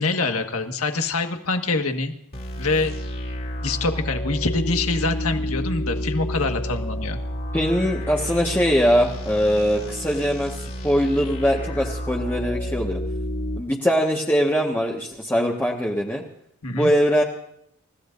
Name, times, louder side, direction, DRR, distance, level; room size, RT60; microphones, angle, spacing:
voice 1, 0.0-2.1 2.6-2.9 3.6-7.2 16.6-16.9, left 3 dB, 80° left, 5 dB, 1.7 m, -25 dB
sound 1, 2.3-13.6, equal, 40° left, 2.9 m, -30 dB
voice 2, 7.5-13.0 13.6-16.2 16.7-17.2, equal, 10° left, -2 dB, 1.5 m, -22 dB
29.0 x 15.5 x 2.6 m, 0.71 s
head